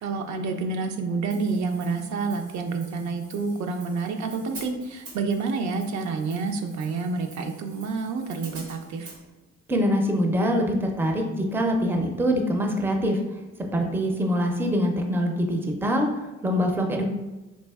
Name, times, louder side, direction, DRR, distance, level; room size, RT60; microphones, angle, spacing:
voice 1, 0.0-9.1, right 4 dB, 70° right, 5 dB, 0.5 m, -28 dB
Hi-hat, 1.3-9.2, right 2 dB, 85° right, 1.1 m, -47 dB
voice 2, 9.7-13.2 13.7-17.1, equal, 5° right, 3 dB, 0.4 m, -24 dB
4.2 x 2.5 x 2.3 m, 1.1 s
cardioid pair, 90°, 30 cm